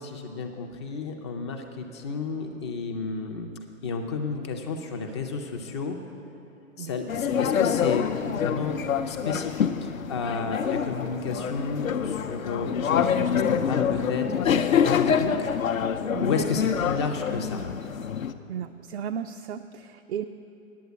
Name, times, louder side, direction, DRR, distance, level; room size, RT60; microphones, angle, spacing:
voice 1, 0.0-3.5 3.8-6.0 6.8-8.8 9.0-15.5 15.8-17.6, left 4 dB, 20° left, 3 dB, 0.4 m, -32 dB
sound 1, 7.1-18.3, left 7 dB, 85° left, 0.6 m, -26 dB
voice 2, 18.5-20.2, right 8 dB, 55° right, 7 dB, 0.4 m, -34 dB
9.4 x 7.7 x 8.2 m, 2.8 s
figure-of-eight pair, 120°, 40 cm